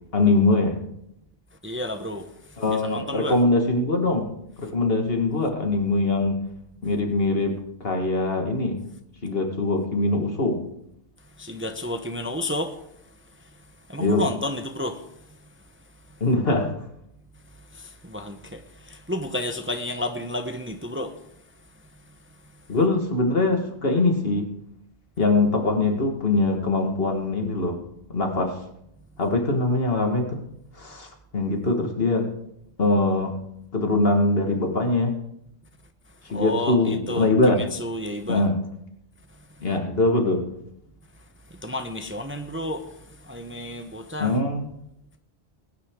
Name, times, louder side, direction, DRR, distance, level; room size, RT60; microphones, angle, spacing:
voice 1, 0.1-0.8 2.6-4.3 4.6-6.4 6.8-7.6 7.8-8.8 9.2-10.6 14.0-14.3 16.2-16.7 22.7-24.5 25.2-27.8 28.1-28.6 29.2-30.4 30.8-32.3 32.8-33.4 33.7-35.2 36.3-37.6 38.3-38.6 39.6-40.4 44.2-44.7, left 2 dB, 60° left, 2.0 m, -22 dB
voice 2, 1.6-2.2 2.8-3.4 11.4-12.7 13.9-15.0 17.8-18.6 18.9-21.1 36.3-38.4 41.6-42.8 43.3-44.4, left 1 dB, 10° right, 0.8 m, -31 dB
20.0 x 10.0 x 3.7 m
omnidirectional pair, 1.1 m